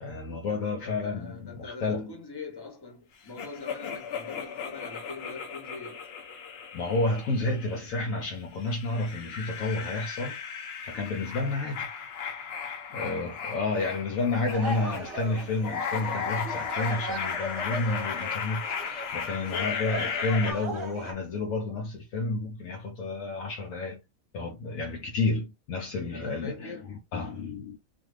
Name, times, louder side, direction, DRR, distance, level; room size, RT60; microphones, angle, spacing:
voice 1, 0.0-2.1 6.7-10.4 10.8-11.9 12.9-24.0 24.3-26.8 27.1-27.8, left 3 dB, 80° left, 1.0 m, -30 dB
voice 2, 0.8-6.1 12.9-13.4 26.1-26.9, left 4 dB, 25° left, 0.6 m, -43 dB
sound 1, 3.4-8.1 8.6-20.5, left 6 dB, 60° left, 0.8 m, -36 dB
sound 2, 14.5-21.1, right 2 dB, 25° right, 0.9 m, -38 dB
2.6 x 2.5 x 3.0 m
omnidirectional pair, 1.4 m